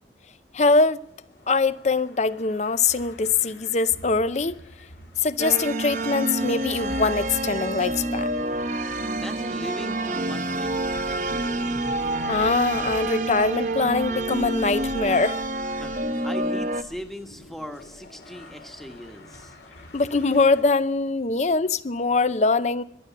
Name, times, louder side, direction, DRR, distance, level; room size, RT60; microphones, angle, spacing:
voice 1, 0.5-1.0 1.5-4.6 5.2-8.3 12.3-15.4 19.9-22.8, left 3 dB, 40° left, 0.6 m, -22 dB
sound 1, 1.0-20.6, equal, 80° left, 4.0 m, -45 dB
sound 2, 5.4-16.8, right 1 dB, 45° right, 1.0 m, -28 dB
voice 2, 9.1-11.5 15.7-19.6, equal, ahead, 1.2 m, -39 dB
15.0 x 11.5 x 8.3 m
head